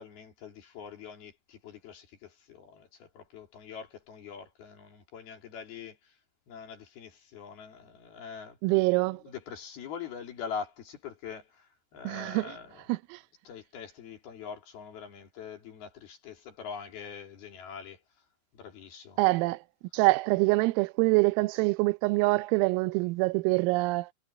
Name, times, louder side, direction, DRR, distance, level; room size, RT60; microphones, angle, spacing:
voice 1, 0.0-6.1 6.5-8.6 9.1-12.8 13.4-18.0 18.5-19.2, left 6 dB, 55° left, 4.6 m, -43 dB
voice 2, 8.6-9.2 12.1-12.6 12.9-13.2 19.2-19.6 19.9-24.1, right 23 dB, 90° right, 3.4 m, -25 dB
omnidirectional pair, 5.9 m